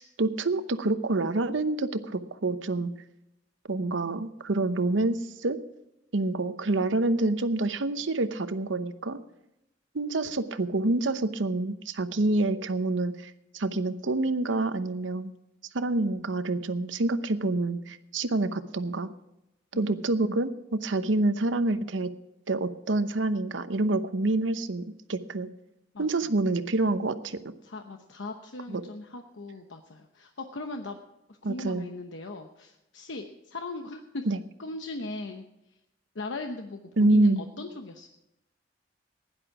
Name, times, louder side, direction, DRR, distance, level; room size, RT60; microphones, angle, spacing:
voice 1, 0.0-2.9 3.7-5.6 6.1-9.2 9.9-15.3 15.7-19.1 19.7-22.1 22.5-25.5 26.0-27.4 28.7-28.8 31.4-31.9 34.3-34.4 37.0-37.4, right 2 dB, 80° right, 12 dB, 0.8 m, -27 dB
voice 2, 27.6-31.0 31.3-34.3 34.6-35.4 36.1-38.1, left 2 dB, 75° left, 5 dB, 0.9 m, -39 dB
16.0 x 11.0 x 4.8 m, 0.88 s
head